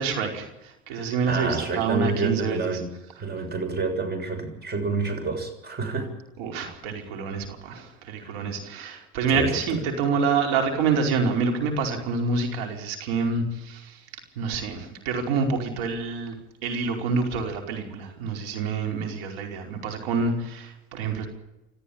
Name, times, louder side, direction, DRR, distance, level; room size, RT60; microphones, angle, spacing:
voice 1, 0.0-2.8 6.4-14.0 14.3-21.3, right 4 dB, 75° right, 3 dB, 5.0 m, -27 dB
voice 2, 0.9-2.9 3.2-6.1 8.2-8.3 9.3-9.5, right 3 dB, 35° right, 7 dB, 6.9 m, -28 dB
26.5 x 14.0 x 8.8 m, 0.95 s
hypercardioid pair, 80°, 30 cm